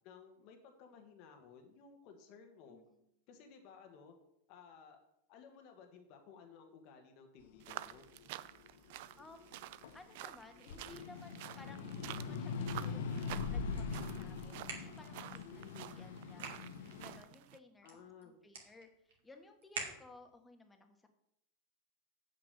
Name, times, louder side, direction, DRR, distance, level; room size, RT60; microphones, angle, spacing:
voice 1, 0.0-2.8 3.3-4.1 4.5-5.0 5.3-8.0 11.6-12.0 15.3-15.9 17.8-18.3, left 6 dB, 55° left, 4 dB, 1.5 m, -57 dB
voice 2, 2.7-3.0 9.2-16.5 16.9-18.0 18.2-21.1, left 3 dB, 15° left, 5 dB, 1.6 m, -58 dB
sound 1, 7.6-10.1 10.5-17.2, left 5 dB, 75° left, 1.0 m, -42 dB
sound 2, 7.6-17.6, right 16 dB, 65° right, 0.4 m, -50 dB
sound 3, 13.4-20.5, right 5 dB, 80° right, 2.4 m, -52 dB
7.9 x 5.9 x 6.7 m, 0.78 s
hypercardioid pair, 105°, 0 cm